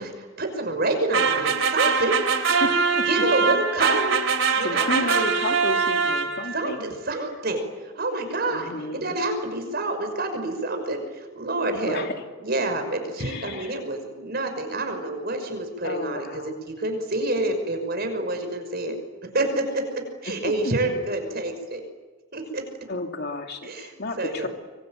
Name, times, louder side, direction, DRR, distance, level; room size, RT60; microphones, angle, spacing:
voice 1, 0.0-2.2 3.1-4.2 4.5-4.9 6.5-12.1 12.4-19.0 19.3-21.8 22.3-22.6 23.6-24.5, right 2 dB, 50° right, 6 dB, 6.0 m, -28 dB
sound 1, 1.1-6.7, right 5 dB, 70° right, 3.3 m, -23 dB
voice 2, 2.5-3.1 3.8-4.0 4.6-6.9 8.5-9.1 11.8-12.1 13.2-13.8 15.8-16.6 20.4-20.7 22.9-24.5, left 2 dB, 55° left, 4 dB, 2.8 m, -32 dB
26.0 x 24.0 x 9.1 m, 1.3 s
head